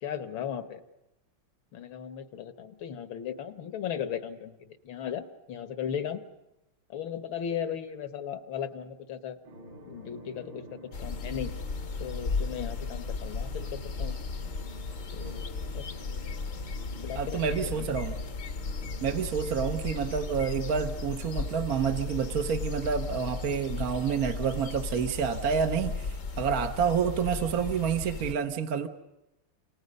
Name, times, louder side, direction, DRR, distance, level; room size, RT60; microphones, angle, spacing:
voice 1, 0.0-0.8 1.7-6.2 6.9-9.4 9.9-10.6 11.0-11.5 12.0-14.2 15.1-15.9 17.0-17.9 18.8-19.0, left 8 dB, 70° left, 10 dB, 2.1 m, -37 dB
sound 1, 9.4-23.9, equal, 75° right, 6.8 m, -49 dB
sound 2, 10.9-28.3, left 4 dB, 45° left, 1.2 m, -35 dB
voice 2, 17.2-18.2 19.0-28.9, right 7 dB, 50° right, 6 dB, 1.3 m, -29 dB
29.5 x 28.0 x 5.4 m, 0.92 s
omnidirectional pair, 2.3 m